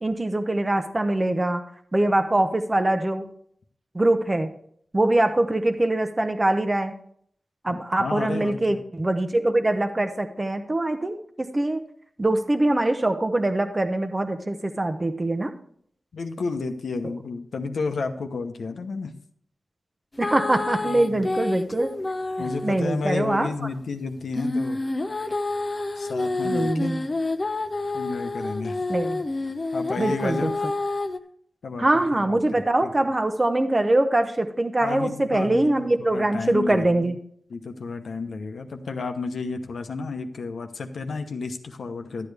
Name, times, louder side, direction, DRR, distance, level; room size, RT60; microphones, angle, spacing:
voice 1, 0.0-1.6 1.9-3.3 3.9-4.5 4.9-6.9 7.6-11.8 12.2-15.5 20.2-21.9 22.6-23.5 26.4-27.0 28.9-29.2 30.0-30.5 31.8-37.2, right 1 dB, 25° right, 7 dB, 0.8 m, -23 dB
voice 2, 7.7-8.8 16.1-19.1 20.8-21.3 22.4-24.8 26.0-26.9 27.9-28.8 29.7-30.6 31.6-31.8 32.1-32.9 34.8-37.1 37.5-42.3, left 4 dB, 90° left, 5 dB, 0.9 m, -32 dB
sound 1, 20.2-22.8 24.3-31.2, left 2 dB, 35° left, 0.7 m, -28 dB
12.0 x 8.5 x 3.4 m, 0.63 s
wide cardioid pair, 75°, 0 cm